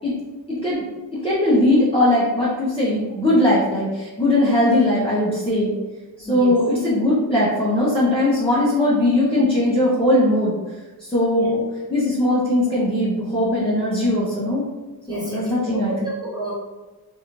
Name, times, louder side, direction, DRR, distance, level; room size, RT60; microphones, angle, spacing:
voice 1, 0.5-0.8 1.2-5.7 6.2-10.5 11.0-11.6 11.9-14.7 15.1-16.1, left 1 dB, 15° left, -10 dB, 0.8 m, -19 dB
voice 2, 15.1-15.4 15.7-16.5, right 1 dB, 10° right, -7 dB, 1.4 m, -30 dB
3.0 x 2.5 x 3.0 m, 1.2 s
wide cardioid pair, 55°, 40 cm